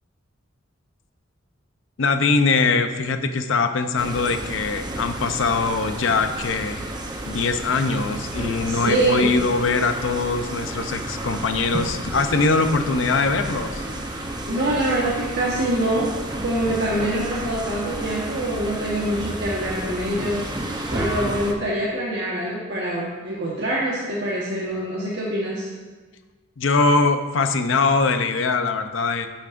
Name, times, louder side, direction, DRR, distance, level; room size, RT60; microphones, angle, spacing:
voice 1, 2.0-6.8 7.3-13.9 26.6-29.3, left 4 dB, 70° left, 8 dB, 0.6 m, -22 dB
sound 1, 4.0-21.5, right 1 dB, 20° right, 0.8 m, -31 dB
voice 2, 8.6-9.3 14.5-20.5 20.9-25.7, right 1 dB, 60° right, -6 dB, 1.3 m, -25 dB
11.0 x 7.2 x 2.6 m, 1.3 s
head